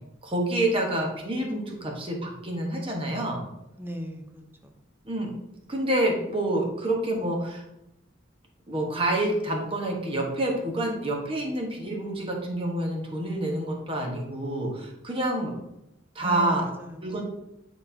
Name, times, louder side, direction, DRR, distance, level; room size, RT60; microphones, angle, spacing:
voice 1, 0.2-3.4 5.0-5.3 5.7-7.6 8.7-15.5 16.1-16.7 17.0-17.2, right 1 dB, 30° right, 0 dB, 1.2 m, -28 dB
voice 2, 3.8-4.8 16.2-17.2, equal, 10° right, 4 dB, 0.6 m, -37 dB
9.4 x 4.1 x 2.8 m, 0.88 s
head